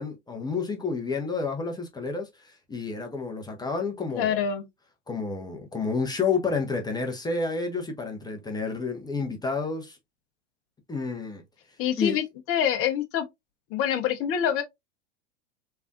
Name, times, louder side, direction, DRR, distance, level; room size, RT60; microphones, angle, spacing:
voice 1, 0.0-4.4 5.1-10.0 10.9-11.4 12.0-12.2, left 4 dB, 10° left, 0.8 m, -30 dB
voice 2, 4.1-4.7 11.8-13.2 13.7-14.6, left 9 dB, 40° left, 0.9 m, -26 dB
3.4 x 3.3 x 2.4 m
hypercardioid pair, 90°, 36 cm